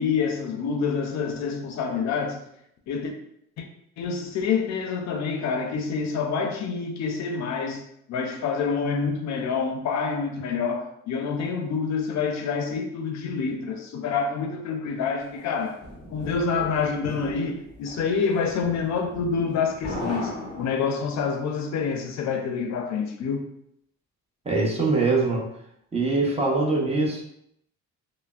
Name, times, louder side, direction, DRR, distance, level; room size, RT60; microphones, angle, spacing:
voice 1, 0.0-2.4 2.9-3.1 3.6-3.7 4.0-7.8 8.1-15.8 16.1-23.4, left 5 dB, 65° left, 0.4 m, -27 dB
sound 1, 15.4-21.2, left 1 dB, 15° left, 1.3 m, -38 dB
voice 2, 24.4-25.5 25.9-27.2, right 3 dB, 20° right, 0.7 m, -23 dB
3.2 x 2.0 x 2.3 m
cardioid pair, 90°, 30 cm